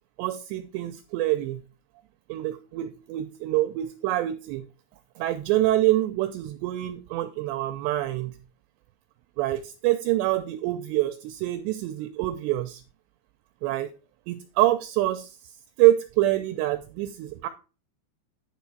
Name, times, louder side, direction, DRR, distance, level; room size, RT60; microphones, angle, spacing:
voice 1, 0.2-1.6 2.3-4.6 5.2-8.4 9.4-12.8 13.6-13.9 14.3-15.5 15.8-17.5, right 15 dB, 80° right, 9 dB, 2.6 m, -26 dB
10.0 x 5.2 x 4.5 m, 0.33 s
omnidirectional pair, 5.4 m